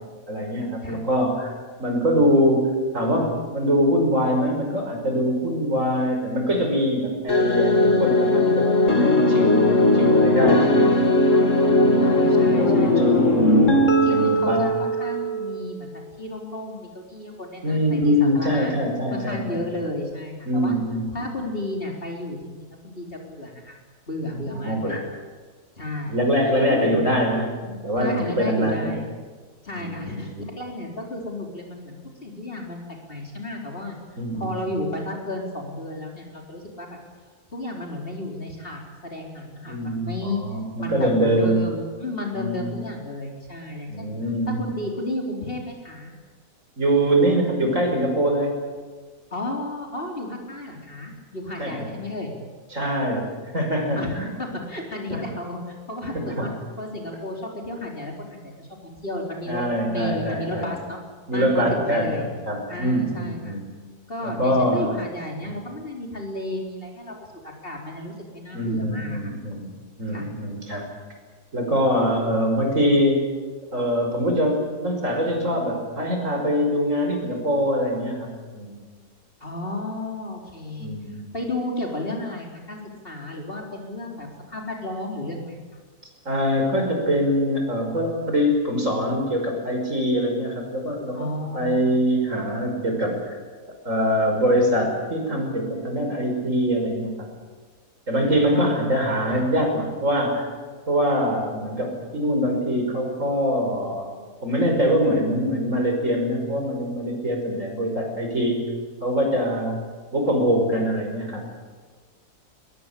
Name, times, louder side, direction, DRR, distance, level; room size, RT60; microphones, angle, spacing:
voice 1, 0.3-1.5 1.8-10.9 11.6-12.1 12.4-13.4 14.0-14.7 17.6-19.6 20.5-21.4 24.5-25.0 26.1-28.9 29.7-30.5 34.2-34.5 39.7-41.7 42.3-42.8 43.9-44.6 46.8-48.6 51.6-51.9 52.7-53.3 53.5-54.3 55.1-55.2 56.1-56.5 59.5-60.7 61.3-63.6 64.2-64.8 65.4-65.6 68.5-69.7 70.0-70.9 71.5-73.3 73.7-78.8 80.8-81.2 86.3-91.3 91.5-93.3 93.8-97.1 98.1-100.5 100.9-104.1 104.4-108.6 109.0-109.8 110.1-111.5, equal, 50° right, 2 dB, 5.9 m, -23 dB
sound 1, 7.3-15.7, left 1 dB, 50° left, 2.9 m, -18 dB
voice 2, 12.0-13.1 14.0-18.7 19.1-20.7 21.1-23.8 24.1-25.0 25.8-26.2 26.6-27.1 28.0-29.1 29.6-32.8 33.1-34.0 34.3-37.0 37.5-40.4 40.8-44.1 44.5-46.1 49.3-52.3 54.0-61.0 61.3-62.3 62.7-63.6 64.1-69.2 70.1-70.3 79.4-80.9 81.3-85.6 91.1-91.8 98.5-99.0 99.3-99.4, left 1 dB, 35° left, 0 dB, 4.4 m, -33 dB
22.0 x 21.5 x 8.7 m, 1.5 s
omnidirectional pair, 1.7 m